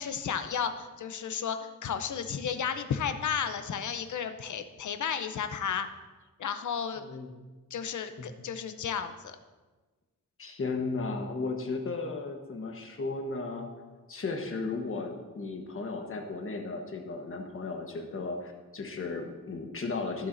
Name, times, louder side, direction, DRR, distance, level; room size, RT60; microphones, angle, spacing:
voice 1, 0.0-5.9 6.4-7.0 7.7-9.4, left 7 dB, 65° left, 9 dB, 0.7 m, -33 dB
voice 2, 7.0-7.3 8.2-8.3 10.4-13.7 14.1-20.3, left 3 dB, 40° left, 3 dB, 1.2 m, -35 dB
17.0 x 7.2 x 2.6 m, 1.3 s
wide cardioid pair, 170°, 32 cm